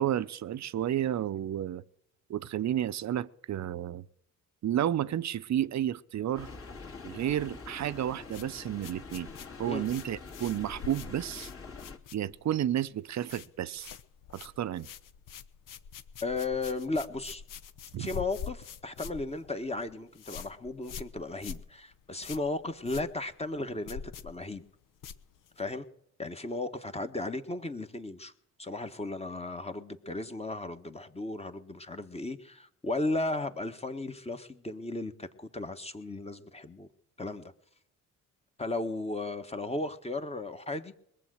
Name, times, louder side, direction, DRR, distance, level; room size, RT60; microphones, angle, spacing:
voice 1, 0.0-1.8 2.3-4.1 4.6-6.5 7.0-9.3 9.6-11.5 12.1-13.9 14.3-14.9 17.9-18.1, right 11 dB, 50° right, 0.8 m, -31 dB
sound 1, 6.3-12.0, left 4 dB, 40° left, 2.6 m, -45 dB
sound 2, 8.3-12.6 12.9-13.5 13.8-25.7, left 8 dB, 60° left, 1.0 m, -45 dB
voice 2, 16.2-17.4 18.0-24.6 25.6-25.9 26.2-28.3 28.6-36.9 37.2-37.5 38.6-40.9, left 2 dB, 15° left, 1.5 m, -35 dB
21.0 x 7.6 x 6.4 m
supercardioid pair, 60°, 37 cm